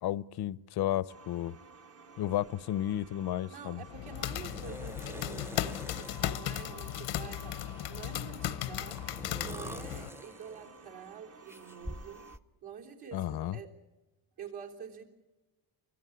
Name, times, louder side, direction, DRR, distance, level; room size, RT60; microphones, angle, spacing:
voice 1, 0.0-1.6 2.2-3.8 13.1-13.6, left 12 dB, 65° left, 20 dB, 0.7 m, -33 dB
sound 1, 1.1-12.4, right 4 dB, 35° right, 1.0 m, -54 dB
sound 2, 2.5-2.6 2.9-3.4 4.3-6.3 6.8-8.2 8.9-10.9 11.5-12.4, equal, 5° right, 0.7 m, -46 dB
voice 2, 3.5-7.6 7.9-9.0 9.4-12.3 12.6-13.7 14.4-15.0, right 7 dB, 65° right, 0 dB, 3.6 m, -47 dB
sound 3, 3.9-10.1, left 13 dB, 85° left, 1.0 m, -36 dB
24.5 x 16.0 x 9.8 m, 1.1 s
cardioid pair, 100°, 42 cm